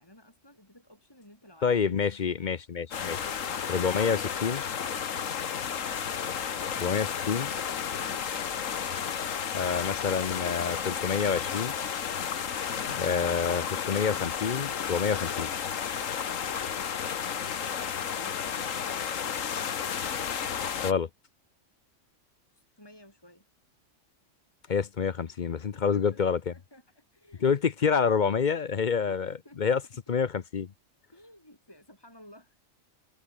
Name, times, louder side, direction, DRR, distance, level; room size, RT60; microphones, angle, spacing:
voice 1, 0.0-2.0 18.1-18.8 22.5-23.5 25.7-27.5 29.1-29.8 31.1-32.6, left 1 dB, 15° left, 5.4 m, -54 dB
voice 2, 1.6-3.2 3.7-4.6 6.8-7.5 9.5-11.8 12.9-15.5 20.8-21.1 24.7-26.5 27.4-29.8 30.1-30.7, left 6 dB, 45° left, 0.7 m, -28 dB
sound 1, 2.9-20.9, left 7 dB, 75° left, 1.6 m, -32 dB
open air
omnidirectional pair, 1.4 m